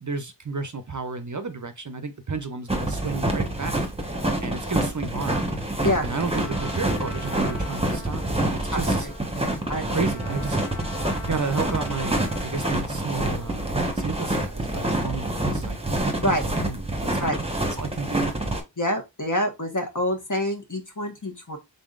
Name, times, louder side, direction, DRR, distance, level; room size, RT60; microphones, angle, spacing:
voice 1, 0.0-3.9 4.4-5.4 6.0-9.1 9.9-10.6 11.2-17.3 17.8-18.4, right 4 dB, 45° right, 0.6 m, -32 dB
sound 1, 2.7-18.6, right 1 dB, 15° right, 1.1 m, -27 dB
Trumpet, 6.3-13.7, left 3 dB, 80° left, 1.1 m, -42 dB
voice 2, 8.7-9.1 9.7-10.1 16.2-16.4 17.2-17.4 18.8-21.6, left 1 dB, 40° left, 1.3 m, -26 dB
3.9 x 3.7 x 2.4 m
wide cardioid pair, 40°, 44 cm